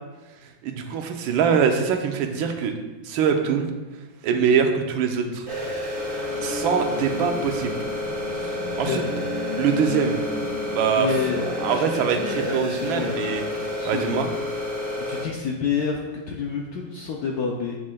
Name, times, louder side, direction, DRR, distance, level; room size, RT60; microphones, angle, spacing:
voice 1, 0.6-2.7 3.0-3.7 4.2-5.5 6.4-7.8 8.4-9.0 9.6-10.2 10.7-11.2 11.6-13.4 13.9-14.3, right 7 dB, 85° right, 5 dB, 1.4 m, -23 dB
sound 1, 5.3-14.3, left 1 dB, 45° left, 2.6 m, -36 dB
sound 2, 5.5-15.2, left 2 dB, 35° right, 1.0 m, -30 dB
voice 2, 8.6-9.1 10.9-13.2 13.8-14.2 15.1-17.8, left 5 dB, 75° left, 0 dB, 0.9 m, -29 dB
7.2 x 6.3 x 2.2 m, 1.2 s
omnidirectional pair, 2.2 m